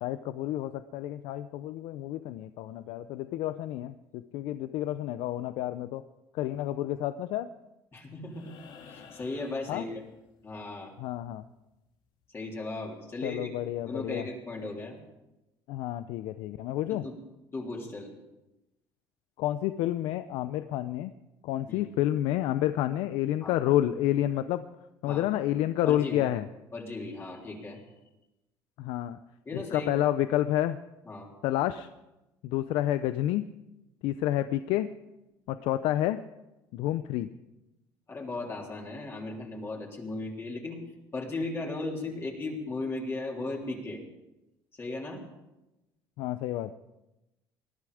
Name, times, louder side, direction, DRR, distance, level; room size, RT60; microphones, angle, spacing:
voice 1, 0.0-6.0 6.3-7.5 9.7-9.8 11.0-11.4 13.2-14.2 15.7-17.0 19.4-21.1 21.4-24.6 25.0-26.5 28.8-29.2 29.5-30.8 31.4-31.9 32.4-33.4 34.0-34.9 35.5-36.2 36.7-37.3 46.2-46.7, left 13 dB, 80° left, 12 dB, 0.6 m, -29 dB
voice 2, 7.9-10.0 10.4-10.9 12.3-13.5 13.8-15.0 16.9-17.2 17.5-18.1 21.7-21.9 23.4-23.6 25.1-25.2 25.8-26.3 26.7-27.8 29.5-30.0 31.1-31.3 38.1-40.8 41.1-44.0 44.8-45.2, left 2 dB, 25° left, -1 dB, 3.4 m, -36 dB
sound 1, 8.3-10.6 12.4-12.5, left 6 dB, 60° left, 2.1 m, -52 dB
20.0 x 12.0 x 5.0 m, 0.98 s
cardioid pair, 110°, 9 cm